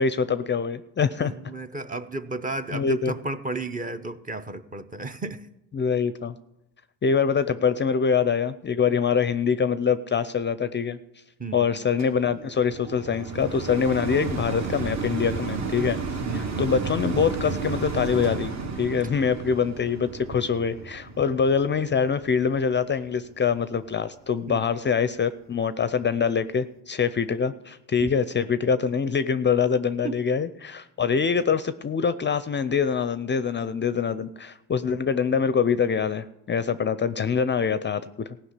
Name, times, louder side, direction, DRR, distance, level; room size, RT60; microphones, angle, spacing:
voice 1, 0.0-1.3 2.7-3.1 5.7-6.3 7.0-11.0 11.5-16.0 16.3-18.5 18.8-38.3, left 6 dB, 30° left, 13 dB, 0.5 m, -24 dB
voice 2, 1.1-5.5 11.4-11.7 16.2-16.7 24.5-24.6 28.0-28.1 30.0-30.2, right 3 dB, 20° right, 10 dB, 0.7 m, -33 dB
sound 1, 12.0-23.3 23.9-24.0, right 4 dB, 45° right, 1.4 m, -32 dB
15.5 x 5.9 x 8.2 m, 0.88 s
supercardioid pair, 90°, 40 cm